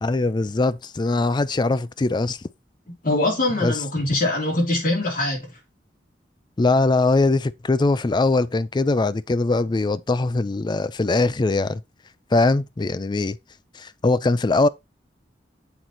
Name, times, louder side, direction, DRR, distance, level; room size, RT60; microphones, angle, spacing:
voice 1, 0.0-2.4 3.6-3.8 6.6-11.8 12.3-13.4 13.7-14.7, left 3 dB, 25° left, 0.4 m, -21 dB
voice 2, 3.0-5.5, left 2 dB, 50° left, 3.7 m, -23 dB
7.9 x 3.9 x 4.4 m
head